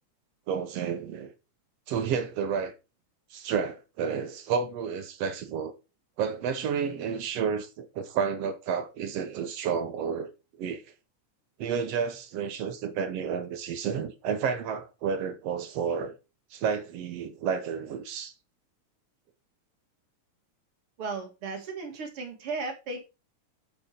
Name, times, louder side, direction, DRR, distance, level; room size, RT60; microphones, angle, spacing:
voice 1, 0.5-1.3 1.9-2.7 3.3-5.7 6.2-10.3 10.6-10.8 11.6-16.1 16.5-18.3, right 6 dB, 70° right, 1.7 m, -31 dB
voice 2, 21.0-23.0, right 4 dB, 50° right, 2.6 m, -35 dB
7.1 x 6.8 x 5.1 m
omnidirectional pair, 3.4 m